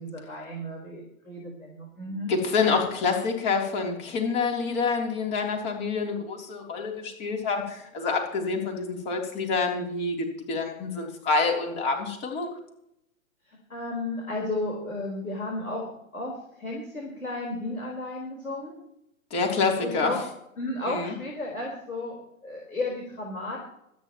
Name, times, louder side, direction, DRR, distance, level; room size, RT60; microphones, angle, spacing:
voice 1, 0.0-2.3 13.5-18.7 19.8-20.2 20.6-22.2 22.4-23.6, left 2 dB, 80° left, -2 dB, 4.5 m, -33 dB
voice 2, 2.3-12.5 19.3-20.1 20.9-21.1, left 4 dB, 25° left, 1 dB, 3.4 m, -27 dB
26.0 x 9.4 x 3.1 m, 0.79 s
figure-of-eight pair, 120°, 42 cm